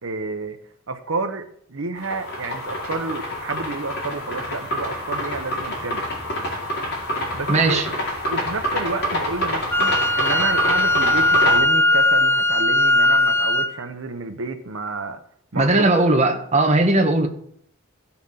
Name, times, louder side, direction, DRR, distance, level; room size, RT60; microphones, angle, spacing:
voice 1, 0.0-0.6 0.9-6.0 7.3-7.8 8.3-15.2 15.5-16.0, right 3 dB, 75° right, 6 dB, 1.0 m, -30 dB
sound 1, 2.0-11.6, equal, 55° left, 4.0 m, -27 dB
voice 2, 7.5-7.9 15.6-17.3, right 2 dB, 35° right, 3 dB, 1.5 m, -18 dB
Wind instrument woodwind instrument, 9.7-13.7, left 1 dB, 10° left, 0.7 m, -18 dB
16.0 x 5.8 x 5.8 m, 0.66 s
head